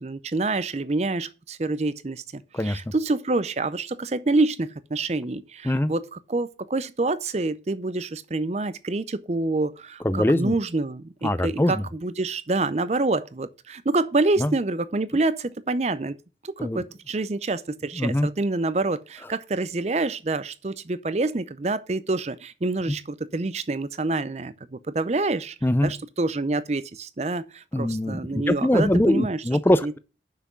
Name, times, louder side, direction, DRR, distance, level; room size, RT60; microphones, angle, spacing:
voice 1, 0.0-16.2 16.4-25.5 25.8-29.4 29.8-29.9, right 2 dB, 40° right, 0.5 m, -27 dB
voice 2, 2.5-2.9 5.6-5.9 10.0-10.5 11.2-11.8 14.4-14.5 16.6-16.8 17.9-18.3 22.9-23.0 25.6-25.9 27.7-30.0, left 1 dB, 10° left, 0.4 m, -22 dB
6.1 x 5.9 x 6.7 m
head